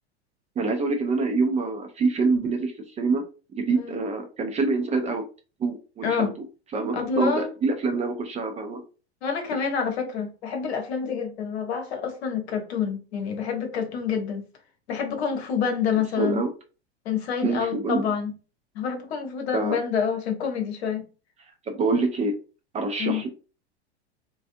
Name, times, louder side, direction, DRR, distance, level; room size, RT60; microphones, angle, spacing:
voice 1, 0.6-3.2 3.6-5.2 5.6-6.3 6.7-8.8 9.6-9.7 16.2-16.5 17.4-18.0 19.5-19.8 21.7-22.3 22.7-23.3, right 3 dB, 20° right, 0.5 m, -25 dB
voice 2, 6.0-6.3 6.9-7.5 9.2-14.4 14.9-16.4 17.0-18.3 18.7-21.0 23.0-23.2, left 6 dB, 70° left, 0.9 m, -27 dB
2.4 x 2.3 x 2.6 m
hypercardioid pair, 95°, 33 cm